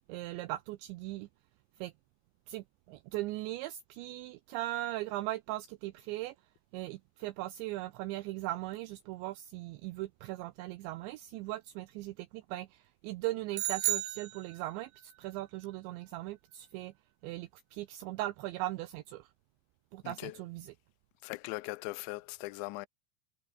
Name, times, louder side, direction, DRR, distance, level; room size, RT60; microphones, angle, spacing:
voice 1, 0.1-1.3 1.8-1.9 2.5-6.3 6.7-16.9 17.2-19.3 19.9-20.7, right 17 dB, 85° right, 2.6 m, -39 dB
sound 1, 13.5-15.0, right 15 dB, 70° right, 2.9 m, -33 dB
voice 2, 20.0-20.4 21.2-22.9, left 23 dB, 80° left, 2.8 m, -40 dB
omnidirectional pair, 5.9 m